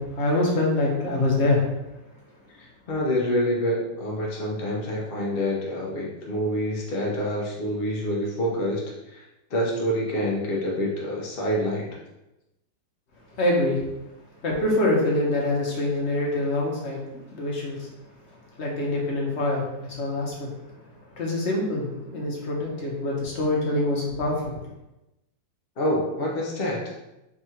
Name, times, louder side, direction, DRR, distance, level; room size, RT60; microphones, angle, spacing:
voice 1, 0.0-1.6 13.4-13.8 14.4-17.9 18.6-20.5 21.2-24.6, left 2 dB, 50° left, -3 dB, 0.9 m, -25 dB
voice 2, 2.6-9.2 9.5-12.0 25.8-26.8, equal, 75° left, -3 dB, 0.5 m, -27 dB
3.6 x 2.4 x 4.3 m, 0.95 s
omnidirectional pair, 2.1 m